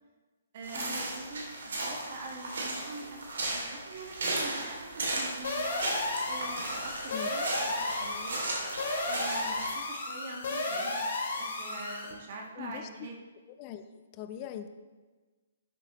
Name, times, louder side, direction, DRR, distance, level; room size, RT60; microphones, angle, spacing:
voice 1, 0.5-3.2 3.5-5.8 6.2-8.4 9.0-13.1, right 3 dB, 50° right, 0 dB, 1.5 m, -44 dB
sound 1, 0.6-9.7, right 2 dB, 70° right, 2.5 m, -36 dB
sound 2, 5.4-12.1, left 2 dB, 65° left, 2.3 m, -33 dB
voice 2, 12.6-12.9 13.6-13.8 14.1-14.7, left 10 dB, 35° left, 10 dB, 0.6 m, -41 dB
12.0 x 6.8 x 3.0 m, 1.3 s
hypercardioid pair, 135°, 0 cm